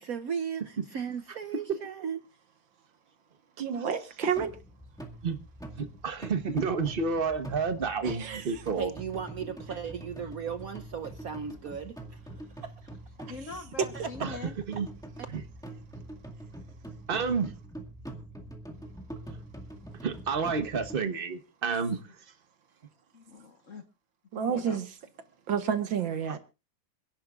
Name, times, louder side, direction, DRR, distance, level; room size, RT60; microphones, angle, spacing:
voice 1, 0.0-2.2 8.8-12.2, right 7 dB, 60° right, 1.1 m, -36 dB
voice 2, 3.6-4.5 8.0-8.6 13.8-13.9 24.3-24.9 25.5-26.4, right 7 dB, 80° right, 2.1 m, -30 dB
sound 1, 4.3-21.0, right 1 dB, ahead, 1.8 m, -44 dB
voice 3, 5.8-8.9 14.2-14.9 15.3-15.4 17.1-17.5 20.0-22.0, right 5 dB, 35° right, 1.1 m, -30 dB
voice 4, 13.3-14.5 23.1-23.8 24.4-24.9, left 4 dB, 45° left, 1.4 m, -43 dB
27.5 x 10.5 x 2.5 m
omnidirectional pair, 2.1 m